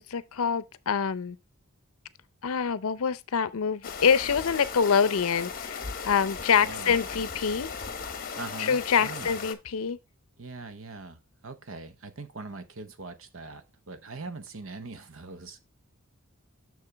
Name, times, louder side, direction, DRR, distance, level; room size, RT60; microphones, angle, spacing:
voice 1, 0.0-1.4 2.4-7.7 8.6-10.0, left 6 dB, 75° left, 0.6 m, -26 dB
sound 1, 3.8-9.5, left 5 dB, 40° left, 0.9 m, -37 dB
voice 2, 6.6-7.2 8.3-9.3 10.4-15.6, right 3 dB, 65° right, 0.9 m, -42 dB
6.9 x 6.4 x 3.4 m
head